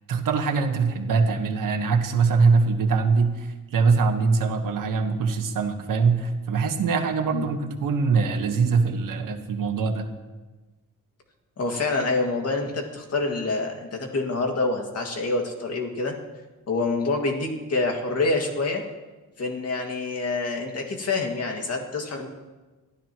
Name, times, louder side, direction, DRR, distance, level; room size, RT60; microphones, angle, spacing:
voice 1, 0.1-10.1, right 4 dB, 70° right, 4 dB, 1.6 m, -23 dB
voice 2, 11.6-16.1 16.7-18.8 19.4-22.3, left 3 dB, 45° left, 2 dB, 2.1 m, -26 dB
23.5 x 14.5 x 3.1 m, 1.2 s
wide cardioid pair, 155°, 34 cm